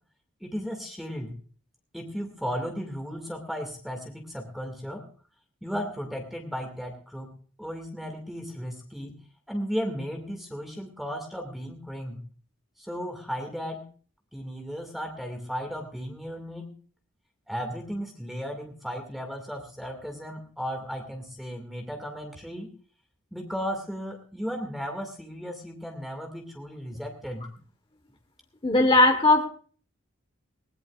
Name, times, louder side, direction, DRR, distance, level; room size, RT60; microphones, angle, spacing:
voice 1, 0.4-1.3 1.9-5.0 5.6-7.3 7.6-9.1 9.5-12.2 12.8-13.9 14.3-16.7 17.5-22.7 23.3-27.5, equal, ahead, 3 dB, 2.2 m, -35 dB
voice 2, 28.6-29.5, left 2 dB, 25° left, 5 dB, 1.4 m, -18 dB
20.0 x 18.5 x 2.5 m, 0.43 s
head